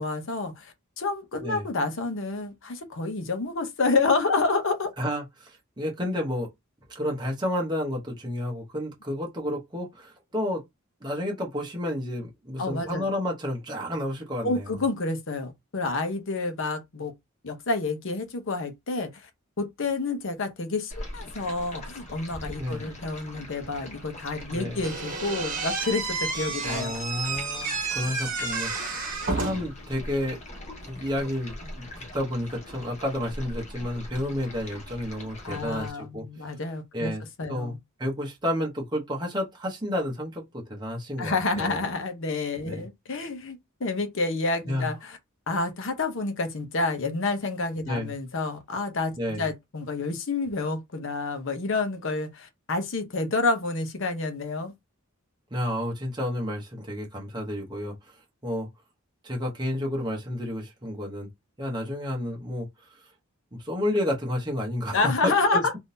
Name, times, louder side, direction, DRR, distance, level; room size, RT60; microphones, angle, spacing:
voice 1, 0.0-4.9 12.6-13.1 14.4-17.1 17.4-19.1 19.6-27.0 35.4-37.8 41.2-45.2 45.5-54.7 64.9-65.8, left 3 dB, 65° left, 0.8 m, -29 dB
voice 2, 5.0-6.5 6.9-10.6 11.0-14.8 22.6-22.8 24.5-24.8 26.6-29.0 29.3-30.4 30.8-36.2 36.9-37.2 37.5-41.8 42.6-42.8 44.7-44.9 47.9-48.1 49.2-49.5 55.5-57.9 58.4-58.7 59.2-61.3 61.6-62.7 63.6-65.8, left 1 dB, 20° right, 0.9 m, -31 dB
Stream, 20.9-35.9, left 1 dB, 35° left, 1.2 m, -42 dB
Slam / Squeak, 24.8-29.8, right 3 dB, 40° right, 1.3 m, -31 dB
3.6 x 2.7 x 2.6 m
head